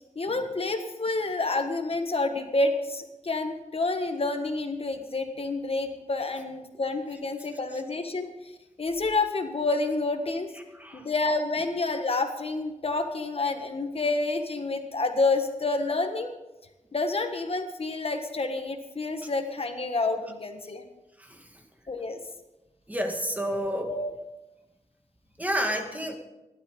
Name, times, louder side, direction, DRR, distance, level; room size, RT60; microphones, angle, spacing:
voice 1, 0.1-8.3 8.8-10.5 10.9-16.3 16.9-20.8 21.9-22.2 23.9-24.1, left 3 dB, 50° left, 6 dB, 1.4 m, -28 dB
voice 2, 10.7-11.1 21.2-21.6 22.9-23.9 25.4-26.2, equal, 10° right, 3 dB, 2.1 m, -30 dB
16.5 x 12.0 x 5.3 m, 1.0 s
wide cardioid pair, 95°, 13 cm